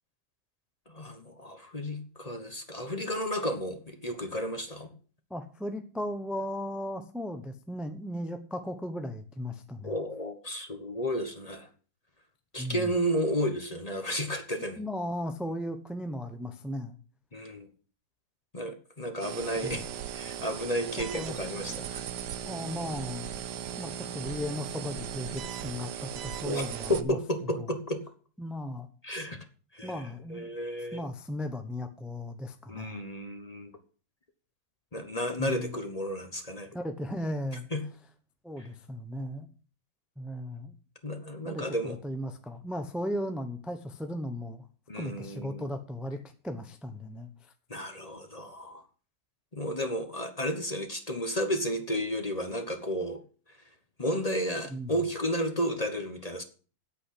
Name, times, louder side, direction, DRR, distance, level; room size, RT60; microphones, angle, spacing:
voice 1, 0.9-4.9 9.8-11.7 12.5-14.8 17.3-17.7 18.5-19.9 20.1-22.1 26.4-28.0 29.0-29.4 29.7-31.1 32.7-33.7 34.9-36.7 37.7-37.8 38.6-38.7 41.0-42.0 44.9-45.7 47.7-48.8 49.5-53.2 54.0-56.4, equal, 25° left, 7 dB, 1.0 m, -32 dB
voice 2, 5.3-9.9 12.6-12.9 14.8-17.0 19.6-19.8 21.1-21.3 22.5-23.3 23.8-27.2 27.6-27.7 28.4-28.9 29.8-30.5 30.9-33.0 35.4-35.8 36.7-37.7 38.4-39.5 40.2-40.7 41.4-44.7 45.0-47.5 54.7-54.9, left 1 dB, ahead, 7 dB, 0.6 m, -36 dB
sound 1, 19.2-27.0, right 9 dB, 65° right, 1.4 m, -38 dB
8.5 x 8.2 x 8.5 m, 0.39 s
omnidirectional pair, 2.0 m